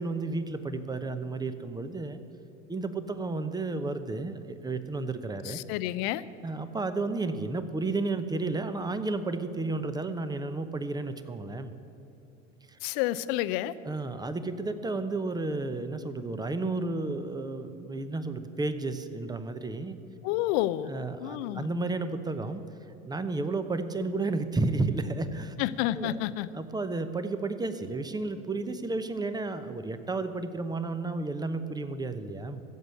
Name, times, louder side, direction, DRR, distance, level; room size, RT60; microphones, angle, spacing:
voice 1, 0.0-2.2 2.7-5.6 6.4-11.7 12.7-12.8 13.8-20.0 20.9-22.6 23.0-25.5 25.9-26.2 26.5-32.6, right 3 dB, 10° right, 10 dB, 0.8 m, -32 dB
voice 2, 5.4-6.2 12.8-13.7 20.2-20.9 21.2-21.7 25.6-26.5, left 14 dB, 50° left, 16 dB, 0.6 m, -29 dB
15.0 x 7.6 x 8.3 m, 3.0 s
hypercardioid pair, 80°, 38 cm